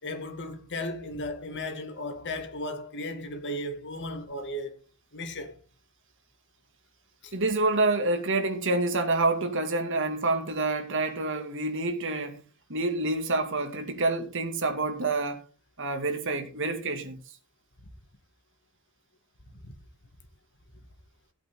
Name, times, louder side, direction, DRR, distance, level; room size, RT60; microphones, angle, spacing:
voice 1, 0.0-4.8 5.1-5.6 7.2-7.3 19.5-19.7, left 1 dB, 55° left, 2.2 m, -35 dB
voice 2, 7.3-12.4 12.7-15.4 15.8-17.2, right 2 dB, 55° right, 2.4 m, -27 dB
16.0 x 8.8 x 3.8 m
head